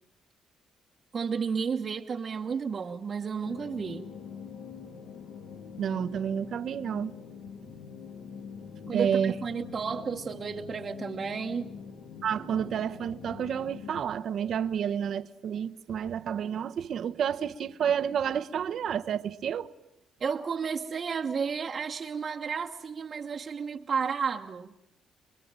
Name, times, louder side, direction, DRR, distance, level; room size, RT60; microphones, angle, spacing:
voice 1, 1.1-4.0 8.9-11.7 20.2-24.7, right 6 dB, 45° right, 1.2 m, -32 dB
sound 1, 3.4-14.0, left 6 dB, 85° left, 2.2 m, -44 dB
voice 2, 5.8-7.1 8.9-9.3 12.2-19.7, right 8 dB, 65° right, 0.9 m, -30 dB
25.5 x 23.0 x 8.9 m
cardioid pair, 90°, 0 cm